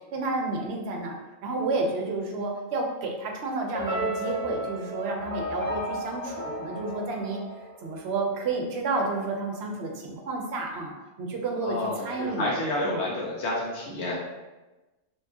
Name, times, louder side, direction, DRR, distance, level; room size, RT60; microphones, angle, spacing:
voice 1, 0.1-1.1 1.4-7.4 7.8-10.9 11.2-12.5 12.8-13.0, right 3 dB, 65° right, 1 dB, 0.9 m, -30 dB
sound 1, 3.7-8.1, equal, 30° right, 1.0 m, -33 dB
voice 2, 11.6-14.1, left 1 dB, 65° left, -4 dB, 1.0 m, -29 dB
4.8 x 2.9 x 2.7 m, 1.1 s
omnidirectional pair, 1.3 m